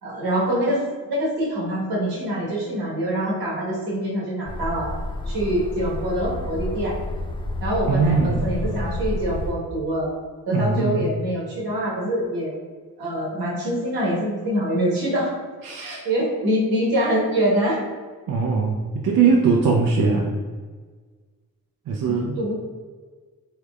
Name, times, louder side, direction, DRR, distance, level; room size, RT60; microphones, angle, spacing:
voice 1, 0.0-4.9 5.3-6.9 7.6-10.1 10.5-12.5 13.0-15.3 15.8-17.8 19.9-20.3 22.1-22.6, equal, 80° right, -5 dB, 1.3 m, -25 dB
sound 1, 4.5-9.5, left 1 dB, 15° left, 0.4 m, -30 dB
voice 2, 7.9-8.5 10.5-11.1 15.6-16.0 16.4-16.5 18.3-20.3 21.9-22.4, right 4 dB, 60° right, -1 dB, 0.5 m, -21 dB
3.5 x 3.4 x 2.3 m, 1.5 s
supercardioid pair, 50°, 37 cm